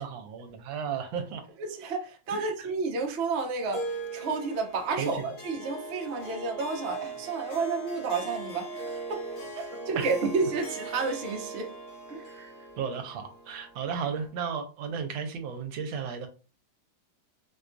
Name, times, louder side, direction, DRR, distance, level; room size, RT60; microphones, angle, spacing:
voice 1, 0.0-1.4 2.3-2.7 4.9-5.2 9.9-10.1 12.8-16.3, right 6 dB, 80° right, 1.4 m, -34 dB
voice 2, 1.6-9.2 9.6-11.7 12.1-12.5, right 4 dB, 65° right, 0.6 m, -31 dB
Harp, 3.7-14.3, right 2 dB, 75° left, 1.6 m, -39 dB
4.5 x 2.3 x 2.5 m
omnidirectional pair, 2.1 m